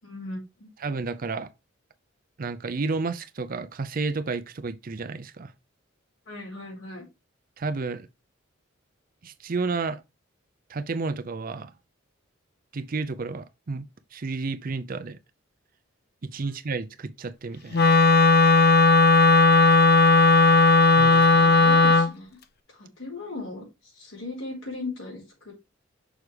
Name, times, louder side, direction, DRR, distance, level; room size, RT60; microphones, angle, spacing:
voice 1, 0.0-0.7 6.3-7.1 16.4-16.5 21.4-22.4 22.7-25.5, left 2 dB, 70° left, 4.4 m, -38 dB
voice 2, 0.8-1.5 2.4-5.5 7.6-8.1 9.2-10.0 10.7-11.7 12.7-13.9 14.1-15.2 16.2-17.9 21.0-21.6, right 4 dB, 45° right, 0.5 m, -31 dB
Wind instrument woodwind instrument, 17.7-22.1, left 3 dB, 50° left, 0.5 m, -16 dB
6.4 x 4.9 x 3.3 m
head